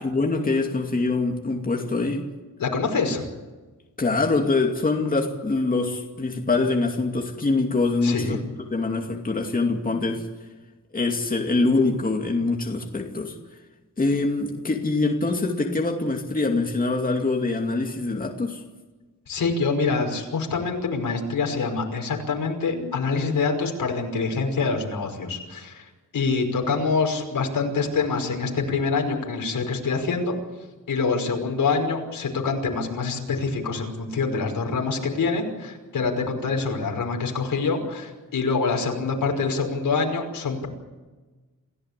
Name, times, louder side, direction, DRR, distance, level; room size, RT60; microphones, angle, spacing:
voice 1, 0.0-2.2 4.0-8.4 8.7-10.3 10.9-13.3 14.0-18.6, left 3 dB, 25° left, 2.6 m, -24 dB
voice 2, 2.6-3.2 8.0-8.4 19.3-30.4 30.9-40.7, left 4 dB, 85° left, 5.6 m, -25 dB
28.5 x 16.0 x 8.4 m
wide cardioid pair, 165°, 33 cm